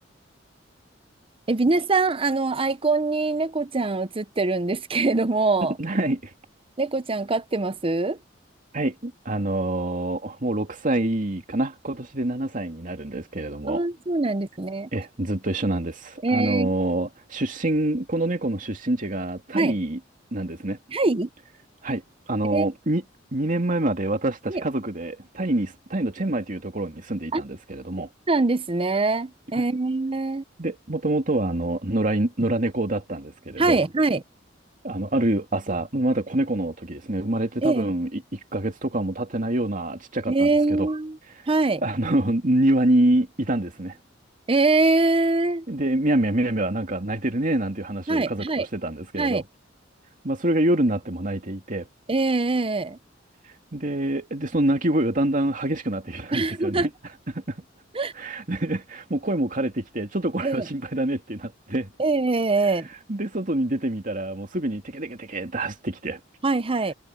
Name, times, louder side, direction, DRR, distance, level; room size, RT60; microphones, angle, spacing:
voice 1, 1.5-5.7 6.8-8.2 13.7-14.9 16.2-16.7 19.5-19.7 20.9-21.3 22.5-22.7 24.5-24.6 27.3-27.4 28.3-30.4 33.6-34.2 37.6-37.9 40.3-41.2 41.5-41.8 44.5-45.7 48.1-48.7 49.2-49.4 52.1-53.0 56.3-56.9 57.9-58.1 60.4-60.6 62.0-62.9 66.4-66.9, right 3 dB, 30° right, 0.7 m, -23 dB
voice 2, 5.6-6.3 8.7-13.8 14.9-20.0 20.3-20.8 21.8-22.0 22.3-23.0 23.3-28.1 29.5-29.6 30.6-33.8 34.8-40.9 41.8-44.0 45.7-49.4 50.2-51.9 53.7-56.9 57.3-57.6 58.1-61.9 63.1-66.2, right 1 dB, 45° right, 2.6 m, -26 dB
head